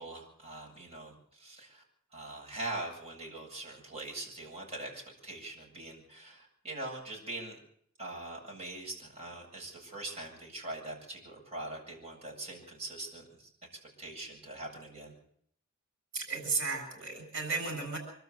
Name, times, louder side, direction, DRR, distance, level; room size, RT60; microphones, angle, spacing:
voice 1, 0.0-1.8 2.1-7.6 8.0-13.5 14.0-15.2, right 2 dB, 30° right, -1 dB, 8.0 m, -42 dB
voice 2, 16.1-18.0, right 4 dB, 60° right, 4 dB, 7.4 m, -34 dB
26.0 x 12.5 x 8.2 m, 0.67 s
head